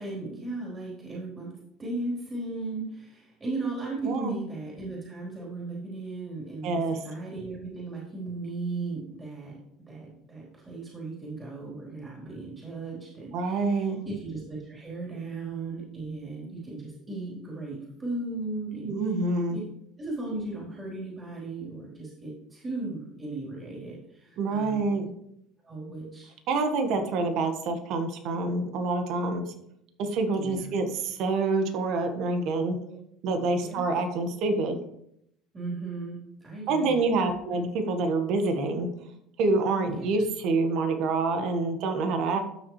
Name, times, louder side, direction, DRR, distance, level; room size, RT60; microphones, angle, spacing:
voice 1, 0.0-1.5 1.8-9.6 9.9-18.9 19.5-19.6 20.0-24.9 25.6-26.3 26.9-27.0 30.4-30.7 32.9-33.0 33.6-33.9 35.5-37.4 39.9-40.1, right 3 dB, 25° right, -4 dB, 3.7 m, -36 dB
voice 2, 6.6-7.0 13.3-14.0 18.8-19.6 24.4-25.1 26.5-29.5 30.0-32.8 33.2-34.8 36.7-38.9 39.4-42.4, right 3 dB, 60° right, 7 dB, 1.5 m, -27 dB
13.0 x 6.3 x 3.2 m, 0.75 s
hypercardioid pair, 75°, 0 cm